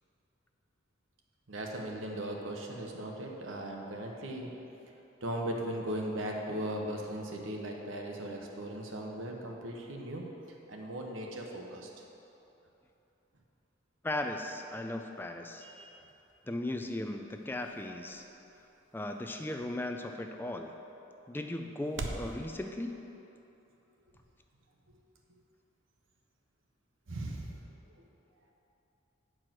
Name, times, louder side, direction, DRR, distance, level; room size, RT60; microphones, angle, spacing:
voice 1, 1.5-4.5 5.2-10.2 10.7-11.9 15.6-16.0 27.1-27.6, right 1 dB, 90° right, 0 dB, 1.1 m, -38 dB
voice 2, 14.0-15.7 16.5-18.2 18.9-20.8 21.3-23.0, left 1 dB, 10° left, 4 dB, 0.3 m, -37 dB
sound 1, 16.1-22.3, right 2 dB, 70° right, 0.7 m, -47 dB
9.0 x 4.7 x 6.0 m, 3.0 s
head